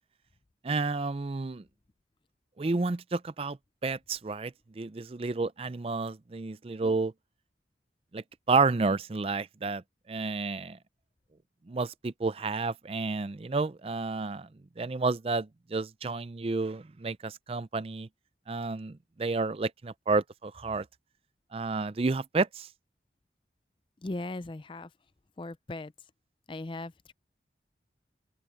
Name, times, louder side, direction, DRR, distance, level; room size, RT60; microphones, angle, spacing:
voice 1, 0.6-1.6 2.6-3.6 3.8-4.5 4.8-7.1 8.1-9.8 10.1-10.8 11.7-14.5 14.8-18.1 18.5-20.8 21.5-22.7, right 3 dB, 30° right, 0.4 m, -30 dB
voice 2, 24.0-24.9 25.4-25.9 26.5-27.1, left 2 dB, 30° left, 0.4 m, -38 dB
open air
head